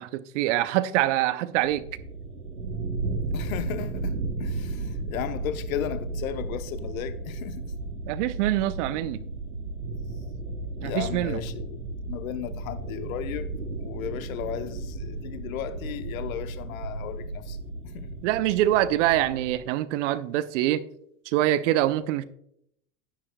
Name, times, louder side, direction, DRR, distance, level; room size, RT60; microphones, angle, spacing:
voice 1, 0.0-1.8 8.1-9.2 10.8-11.4 18.2-20.8 21.3-22.2, right 14 dB, 55° right, 0.6 m, -25 dB
sound 1, 1.6-19.5, right 3 dB, 85° right, 1.2 m, -34 dB
voice 2, 3.3-7.7 10.8-11.8 12.1-13.5 13.8-17.6 17.8-18.3, left 11 dB, 65° left, 0.9 m, -35 dB
10.0 x 10.0 x 2.2 m
hypercardioid pair, 95°, 44 cm